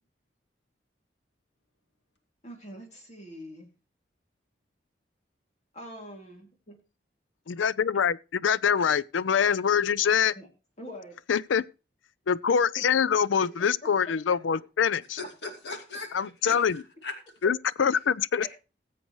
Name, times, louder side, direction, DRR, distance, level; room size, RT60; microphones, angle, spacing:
voice 1, 2.4-3.7 5.7-6.8 10.4-10.5 10.8-11.2 12.8-12.9, equal, 35° left, 2.6 m, -44 dB
voice 2, 7.5-10.3 11.3-11.6 12.3-15.2 16.1-16.8 17.4-18.5, left 7 dB, 90° left, 0.5 m, -24 dB
voice 3, 15.2-17.1 18.4-18.5, left 3 dB, 70° left, 2.2 m, -39 dB
19.5 x 7.6 x 3.1 m
head